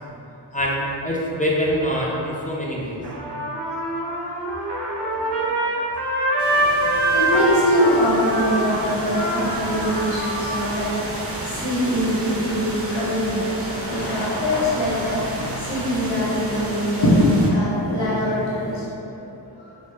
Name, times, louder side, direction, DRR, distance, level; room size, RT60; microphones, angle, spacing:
voice 1, 0.5-3.0, equal, 20° left, -5 dB, 0.5 m, -24 dB
Trumpet, 3.0-10.7, right 1 dB, 60° right, 0.8 m, -24 dB
voice 2, 5.0-5.4 6.5-18.9 19.2-19.3 19.6-19.7, equal, 85° left, -8 dB, 1.1 m, -24 dB
sound 1, 6.4-17.5, right 1 dB, 30° right, 0.6 m, -32 dB
sound 2, 13.6-18.8, equal, 50° left, 0.8 m, -25 dB
4.8 x 2.1 x 2.9 m, 2.9 s
cardioid pair, 50°, 45 cm